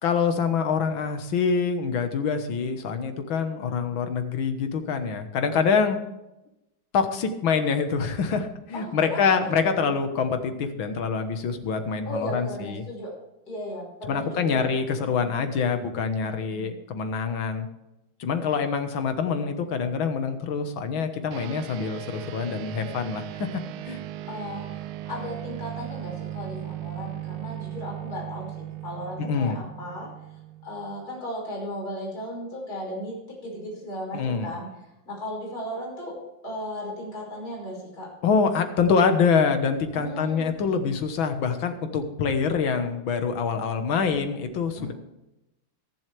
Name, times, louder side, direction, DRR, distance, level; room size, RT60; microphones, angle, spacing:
voice 1, 0.0-6.0 6.9-12.8 14.1-17.7 18.2-24.0 29.2-29.6 34.1-34.5 38.2-44.9, left 5 dB, 75° left, 7 dB, 2.0 m, -25 dB
voice 2, 8.7-9.3 9.8-9.9 12.1-13.1 13.5-14.6 16.3-16.7 24.3-30.1 30.6-33.1 33.4-34.7 35.1-36.1 36.4-38.1 39.9-40.5 44.8-44.9, left 1 dB, 45° left, -4 dB, 6.0 m, -36 dB
sound 1, 21.3-31.0, right 14 dB, 80° right, 1.4 m, -37 dB
22.5 x 7.6 x 3.4 m, 0.95 s
omnidirectional pair, 2.2 m